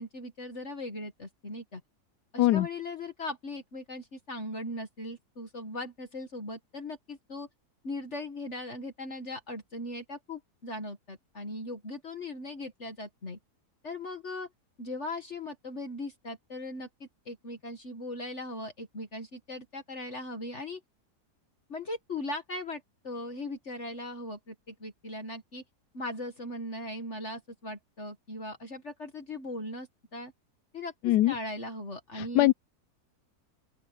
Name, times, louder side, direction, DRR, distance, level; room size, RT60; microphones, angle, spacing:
voice 1, 0.0-1.8 2.3-7.5 7.8-13.4 13.8-14.5 14.8-20.8 21.7-25.6 25.9-30.3 30.7-32.5, left 2 dB, 45° left, 2.2 m, -39 dB
voice 2, 31.0-31.3 32.1-32.5, left 16 dB, 80° left, 1.1 m, -22 dB
open air
omnidirectional pair, 1.7 m